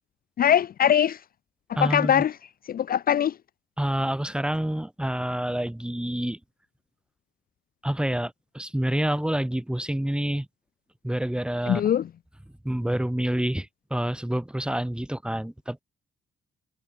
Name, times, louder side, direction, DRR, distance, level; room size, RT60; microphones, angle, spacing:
voice 1, 0.4-1.2 1.8-2.3 2.7-3.3 11.7-12.0, left 9 dB, 50° left, 0.6 m, -21 dB
voice 2, 1.8-2.2 3.8-6.4 7.8-10.5 11.0-11.8 12.6-15.8, right 1 dB, 5° right, 1.9 m, -28 dB
cardioid pair, 90°, 20 cm